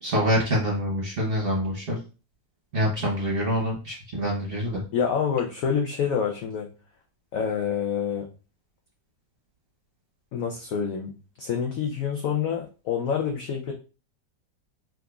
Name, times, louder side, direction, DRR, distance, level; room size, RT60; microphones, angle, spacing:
voice 1, 0.0-2.0 2.7-4.8, equal, 40° right, -3 dB, 0.9 m, -26 dB
voice 2, 4.9-6.7 7.3-8.3 10.3-11.1 11.4-13.7, left 7 dB, 80° left, 2 dB, 0.7 m, -27 dB
3.6 x 2.9 x 2.3 m, 0.34 s
omnidirectional pair, 1.9 m